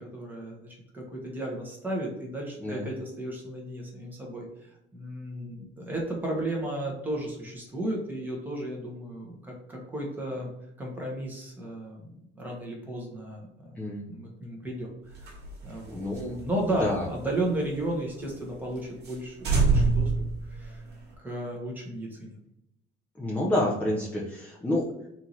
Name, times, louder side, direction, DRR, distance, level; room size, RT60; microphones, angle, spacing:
voice 1, 0.0-10.5 10.8-13.7 14.1-14.9 15.2-15.3 15.6-16.0 16.4-20.1 20.5-20.8 21.2-22.3, right 1 dB, 10° right, -2 dB, 1.2 m, -34 dB
voice 2, 2.6-2.9 13.8-14.0 15.9-16.4 16.8-17.0 23.2-24.9, left 1 dB, 5° left, -4 dB, 0.6 m, -28 dB
sound 1, 15.1-17.9 18.3-18.4 18.7-18.8 19.0-19.2 19.4-21.1, right 4 dB, 55° right, 1.7 m, -27 dB
4.6 x 2.8 x 4.0 m, 0.84 s
cardioid pair, 170°, 21 cm